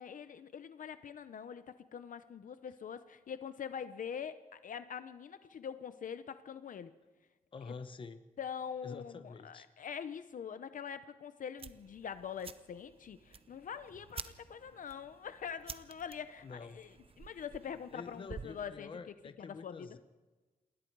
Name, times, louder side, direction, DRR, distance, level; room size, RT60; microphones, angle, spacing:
voice 1, 0.0-1.6 1.9-6.9 7.7-7.8 8.4-19.0 19.4-20.0, left 7 dB, 65° left, 11 dB, 0.8 m, -44 dB
voice 2, 7.5-8.2 8.8-9.7 16.4-16.8 17.9-20.0, left 4 dB, 35° left, 10 dB, 1.0 m, -47 dB
sound 1, 11.6-18.7, right 6 dB, 40° right, 0.8 m, -51 dB
27.5 x 20.5 x 4.7 m, 1.2 s
wide cardioid pair, 180°, 15 cm